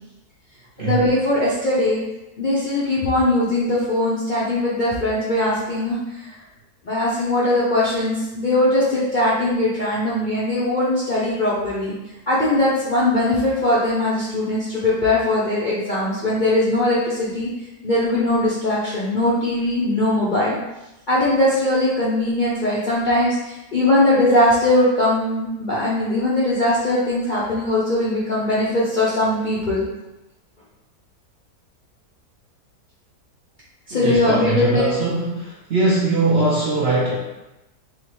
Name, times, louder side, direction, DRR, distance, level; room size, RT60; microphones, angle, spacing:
voice 1, 0.8-2.0 2.4-6.4 6.8-11.9 12.3-17.5 17.8-20.6 21.1-29.8 33.9-34.8, left 1 dB, 55° left, -8 dB, 0.5 m, -20 dB
voice 2, 33.9-37.2, right 3 dB, 65° right, -5 dB, 0.6 m, -21 dB
3.6 x 2.8 x 3.0 m, 0.98 s
omnidirectional pair, 1.7 m